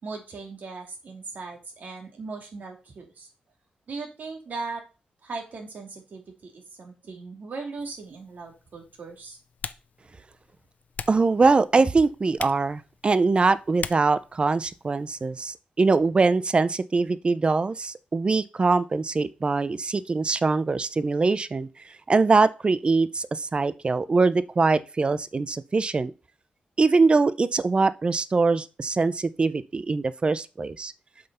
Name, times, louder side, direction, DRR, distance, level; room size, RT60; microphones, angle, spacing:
voice 1, 0.0-3.3 3.9-4.8 5.2-9.4, right 4 dB, 65° right, 3.0 m, -38 dB
Typing, 7.8-15.3, left 6 dB, 60° left, 0.6 m, -43 dB
voice 2, 11.1-26.1 26.8-30.9, right 3 dB, 35° right, 0.6 m, -23 dB
7.7 x 5.5 x 5.6 m
wide cardioid pair, 100°, 3 cm